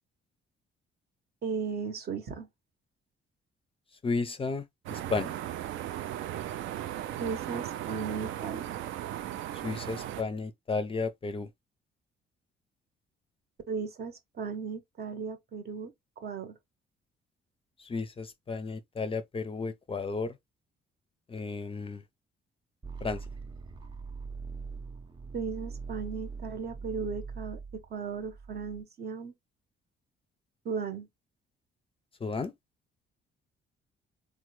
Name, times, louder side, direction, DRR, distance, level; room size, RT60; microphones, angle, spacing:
voice 1, 1.4-2.5 7.2-8.8 13.7-16.6 25.3-29.4 30.6-31.1, right 5 dB, 55° right, 0.8 m, -36 dB
voice 2, 4.0-4.6 4.9-5.3 9.6-11.5 17.8-20.3 21.3-22.0 23.0-23.2 32.2-32.5, left 4 dB, 30° left, 0.4 m, -33 dB
sound 1, 4.9-10.2, right 12 dB, 75° right, 0.4 m, -37 dB
sound 2, 22.8-28.8, right 5 dB, 20° right, 0.6 m, -42 dB
3.1 x 2.1 x 3.0 m
cardioid pair, 90°, 20 cm